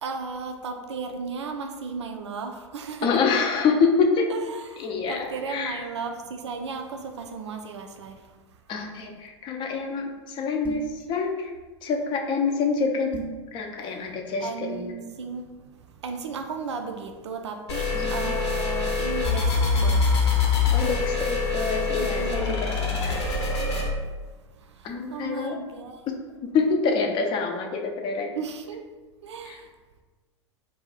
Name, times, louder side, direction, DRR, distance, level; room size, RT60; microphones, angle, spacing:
voice 1, 0.0-3.1 4.3-8.3 13.8-14.1 14.4-15.5 16.0-17.8 18.1-20.1 22.0-22.9 24.6-26.0 28.3-28.8 29.2-29.7, right 5 dB, 70° right, 5 dB, 0.4 m, -35 dB
voice 2, 3.0-4.3 4.8-5.9 8.7-11.5 11.8-13.2 13.5-14.9 17.9-18.3 20.7-22.8 23.0-23.2 24.8-25.6 26.1-26.2 26.4-28.4 29.4-29.6, left 4 dB, 30° left, 3 dB, 0.5 m, -26 dB
sound 1, 10.6-11.0 13.1-13.5, right 3 dB, 10° right, 0.6 m, -36 dB
sound 2, 17.7-23.9, left 4 dB, 65° left, 0.8 m, -24 dB
2.6 x 2.2 x 4.0 m, 1.3 s
figure-of-eight pair, 90°, 15 cm